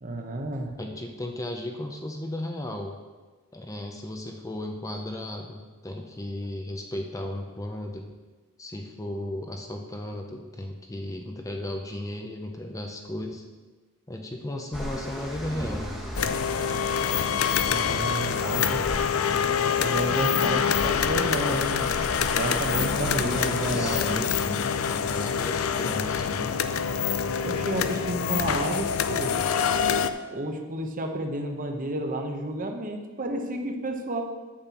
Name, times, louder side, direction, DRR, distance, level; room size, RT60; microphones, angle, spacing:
voice 1, 0.0-0.7 17.7-18.9 19.7-24.3 27.4-29.3 30.3-34.2, right 1 dB, 40° right, 4 dB, 0.9 m, -31 dB
voice 2, 0.8-3.0 3.5-8.1 8.6-13.4 14.1-16.0 23.7-26.7, left 1 dB, 15° left, 3 dB, 0.6 m, -35 dB
sound 1, 14.7-24.1, equal, ahead, 1.2 m, -37 dB
sound 2, 16.2-30.1, left 7 dB, 70° left, 0.4 m, -26 dB
8.7 x 4.3 x 7.2 m, 1.3 s
head